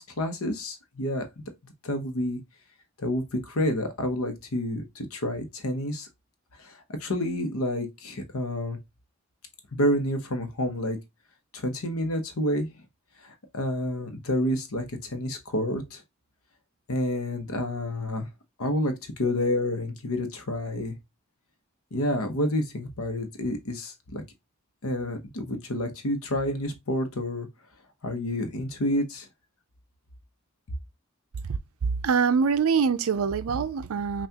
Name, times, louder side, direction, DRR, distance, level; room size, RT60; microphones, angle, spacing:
voice 1, 0.0-1.4 1.8-2.4 3.0-6.1 6.6-8.8 9.7-11.0 11.5-12.7 13.2-16.0 16.9-18.3 18.6-21.0 21.9-24.2 24.8-27.5 28.0-29.3, left 1 dB, 75° left, 0.9 m, -29 dB
voice 2, 31.5-34.3, right 6 dB, 75° right, 0.4 m, -25 dB
5.7 x 2.4 x 2.8 m
head